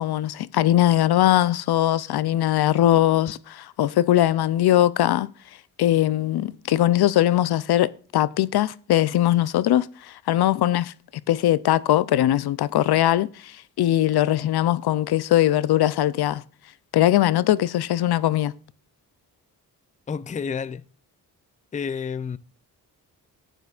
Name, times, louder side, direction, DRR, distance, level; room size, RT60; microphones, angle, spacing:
voice 1, 0.0-5.3 5.8-10.9 11.3-16.4 16.9-18.5, left 13 dB, 70° left, 0.5 m, -21 dB
voice 2, 20.1-20.8 21.7-22.4, left 6 dB, 20° left, 0.4 m, -29 dB
12.0 x 9.2 x 2.4 m
cardioid pair, 60°, 40 cm